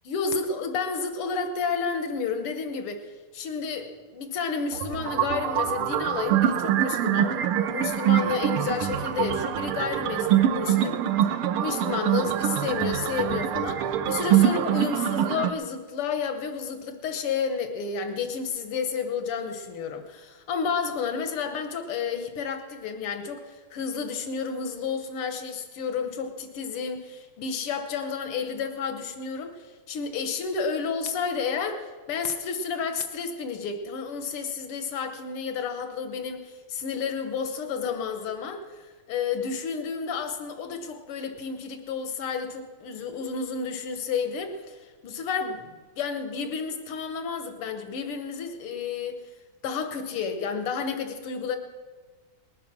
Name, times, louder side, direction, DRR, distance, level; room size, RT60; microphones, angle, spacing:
voice 1, 0.1-3.1 3.3-49.2 49.6-51.6, left 5 dB, 85° left, 7 dB, 2.0 m, -31 dB
sound 1, 4.7-15.5, right 10 dB, 80° right, 1.7 m, -24 dB
20.0 x 9.1 x 6.0 m, 1.4 s
omnidirectional pair, 2.4 m